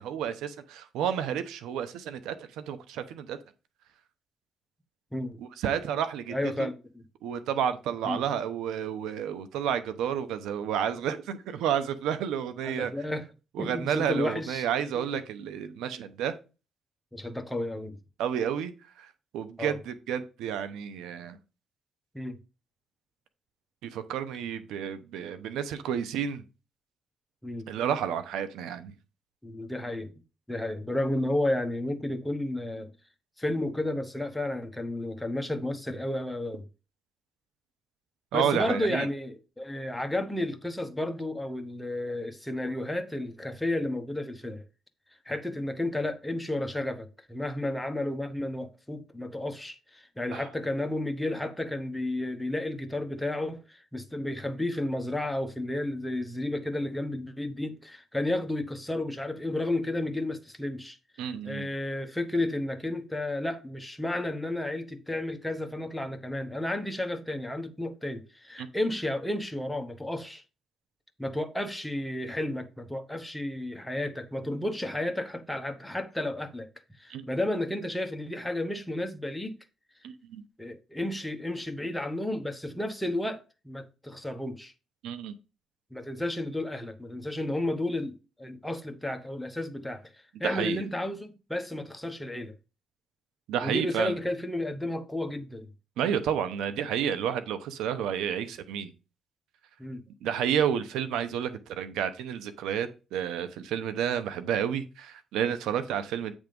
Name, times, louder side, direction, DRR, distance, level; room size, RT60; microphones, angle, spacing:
voice 1, 0.0-3.4 5.4-6.7 7.2-12.9 13.5-16.4 18.2-21.4 23.8-26.4 27.7-28.9 38.3-39.1 50.3-50.5 61.2-61.7 68.6-68.7 77.1-77.3 80.0-80.4 85.0-85.3 90.4-90.8 93.5-94.1 96.0-98.9 100.2-106.3, right 8 dB, 90° right, 0.8 m, -31 dB
voice 2, 6.3-7.0 8.0-8.2 12.6-13.2 13.6-14.7 14.9-15.2 17.1-18.0 19.6-19.8 22.1-22.4 27.4-27.7 29.4-30.1 30.5-32.9 33.4-36.7 38.3-44.6 45.3-70.4 71.2-76.7 77.0-79.6 80.6-84.7 85.9-90.1 90.4-92.5 93.6-95.7 99.8-100.0, left 1 dB, 5° left, 1.1 m, -32 dB
8.9 x 3.6 x 5.2 m
cardioid pair, 90°, 0 cm